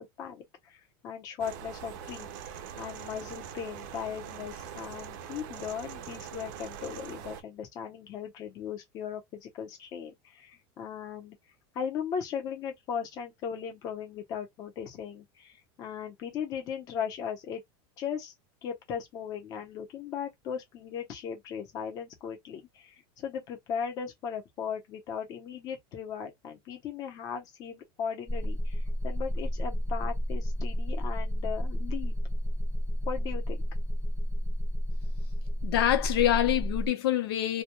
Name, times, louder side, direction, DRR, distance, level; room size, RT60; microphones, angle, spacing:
voice 1, 0.0-11.4 11.7-17.6 18.0-18.3 18.6-32.1 33.1-33.6, left 7 dB, 30° left, 0.7 m, -38 dB
sound 1, 1.4-7.4, right 8 dB, 55° right, 0.5 m, -43 dB
sound 2, 28.3-36.9, equal, 10° left, 1.0 m, -31 dB
voice 2, 35.6-37.6, left 12 dB, 85° left, 0.8 m, -25 dB
2.2 x 2.2 x 2.9 m
supercardioid pair, 175°, 13 cm